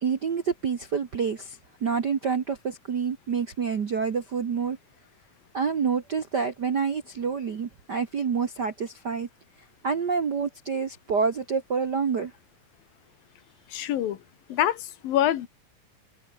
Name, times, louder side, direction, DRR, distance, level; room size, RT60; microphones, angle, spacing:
voice 1, 0.0-4.8 5.5-9.3 9.8-12.3, right 6 dB, 55° right, 1.2 m, -27 dB
voice 2, 13.7-14.2 14.5-15.5, left 12 dB, 85° left, 3.4 m, -25 dB
open air
omnidirectional pair, 4.0 m